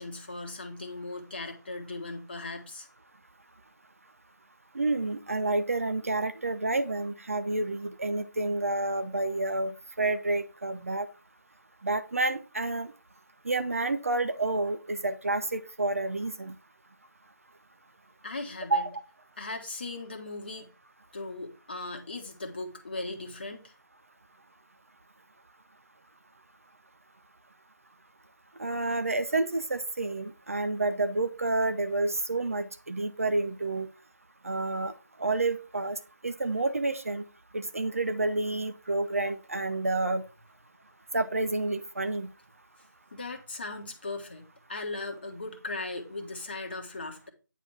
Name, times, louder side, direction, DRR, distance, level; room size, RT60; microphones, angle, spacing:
voice 1, 0.0-2.9 18.2-18.8 19.4-20.7 21.1-23.7 43.1-47.3, left 2 dB, 30° left, 3 dB, 1.1 m, -38 dB
voice 2, 4.7-11.1 11.8-12.9 13.5-16.5 18.7-19.0 28.6-33.9 34.4-34.9 35.2-36.0 36.2-37.2 37.5-40.2 41.1-42.3, right 2 dB, 45° right, 10 dB, 0.5 m, -29 dB
9.1 x 3.4 x 5.8 m, 0.33 s
figure-of-eight pair, 165°, 10 cm